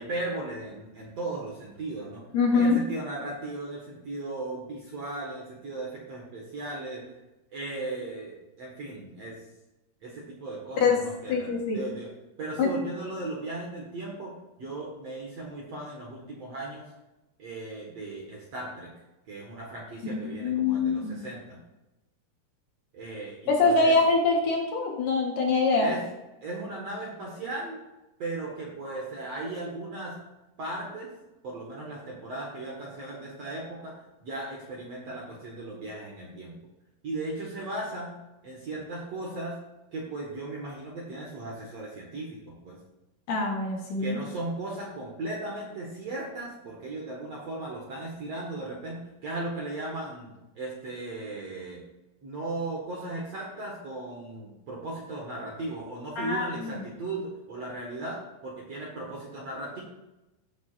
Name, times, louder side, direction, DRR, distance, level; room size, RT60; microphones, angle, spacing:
voice 1, 0.0-2.2 2.5-7.0 7.5-9.4 10.0-12.1 12.4-16.9 17.4-18.9 19.3-21.6 22.9-24.0 25.8-26.1 26.4-27.8 28.2-30.2 30.6-31.1 31.4-36.6 37.0-39.6 39.9-42.8 44.0-51.8 52.2-59.8, right 2 dB, 55° right, -3 dB, 2.0 m, -37 dB
voice 2, 2.3-2.8 10.8-11.0 11.3-11.8 12.6-12.7 20.0-21.2 23.5-25.9 43.3-44.2 56.2-56.7, left 3 dB, 65° left, -1 dB, 2.5 m, -24 dB
16.5 x 7.4 x 2.5 m, 0.98 s
omnidirectional pair, 4.7 m